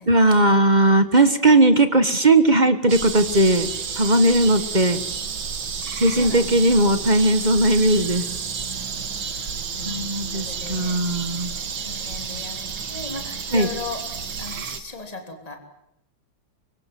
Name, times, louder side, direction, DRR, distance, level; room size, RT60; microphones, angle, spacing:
voice 1, 0.1-3.7 3.9-5.0 6.0-8.3 9.8-11.5 13.5-13.7, right 2 dB, 25° right, 10 dB, 1.4 m, -18 dB
sound 1, 2.9-14.8, right 6 dB, 75° right, 2.6 m, -31 dB
voice 2, 6.2-6.9 9.7-10.1 10.3-11.0 11.8-14.0 14.4-15.6, left 3 dB, 20° left, 4 dB, 3.3 m, -36 dB
25.0 x 23.5 x 7.7 m, 0.81 s
omnidirectional pair, 2.1 m